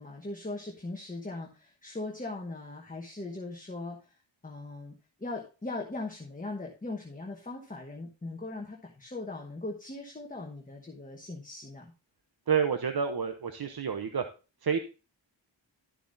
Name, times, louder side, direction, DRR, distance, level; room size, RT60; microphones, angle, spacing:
voice 1, 0.0-4.2 4.4-4.9 5.2-11.9, left 2 dB, 15° left, 1 dB, 1.1 m, -39 dB
voice 2, 12.5-14.2 14.6-14.8, right 7 dB, 50° right, 8 dB, 0.8 m, -29 dB
11.5 x 7.1 x 2.6 m, 0.31 s
wide cardioid pair, 85°, 46 cm